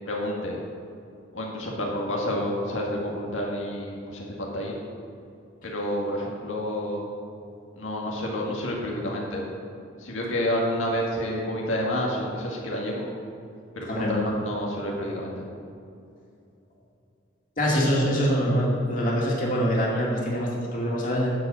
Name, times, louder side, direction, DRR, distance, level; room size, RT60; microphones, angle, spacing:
voice 1, 0.1-0.6 1.3-4.8 5.6-7.1 7.8-9.5 10.0-13.1 13.7-15.4, left 1 dB, 90° left, -2 dB, 1.9 m, -29 dB
voice 2, 13.9-14.4 17.6-21.3, equal, 45° left, -4 dB, 2.4 m, -24 dB
11.5 x 5.3 x 7.9 m, 2.6 s
head